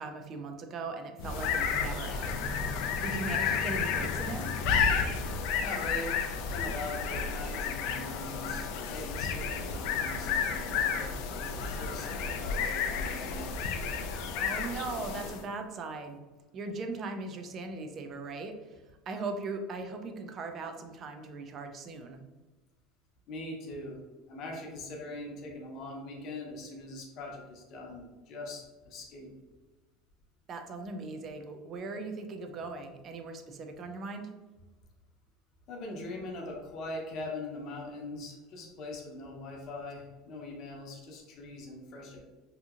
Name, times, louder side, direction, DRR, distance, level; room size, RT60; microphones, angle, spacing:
voice 1, 0.0-4.5 14.4-16.2 16.5-18.8 19.1-22.2 30.5-34.3, right 3 dB, 30° right, 5 dB, 0.3 m, -39 dB
sound 1, 1.2-15.5, left 6 dB, 65° left, 0.3 m, -32 dB
voice 2, 5.6-6.2 6.5-13.5 23.3-24.0 24.3-29.3 35.7-42.2, left 2 dB, 45° left, 0 dB, 0.7 m, -42 dB
2.8 x 2.6 x 2.4 m, 1.2 s
supercardioid pair, 150°, 0 cm